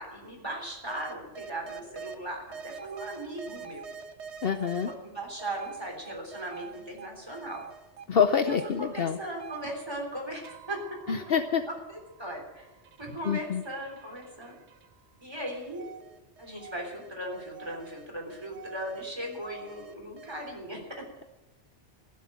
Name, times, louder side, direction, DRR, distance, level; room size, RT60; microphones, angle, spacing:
voice 1, 0.0-3.8 4.8-7.6 8.4-11.0 11.7-12.7 13.0-14.5 15.2-15.8 16.4-21.0, right 1 dB, 20° right, 1 dB, 3.6 m, -38 dB
sound 1, 0.9-2.2 2.5-4.9 5.4-8.0 8.3-15.1 15.6-20.5, right 7 dB, 75° right, 1.3 m, -47 dB
voice 2, 4.4-4.9 8.1-9.2 11.1-11.6 13.2-13.6, left 7 dB, 60° left, 9 dB, 0.9 m, -26 dB
15.0 x 7.6 x 8.5 m, 1.0 s
omnidirectional pair, 1.2 m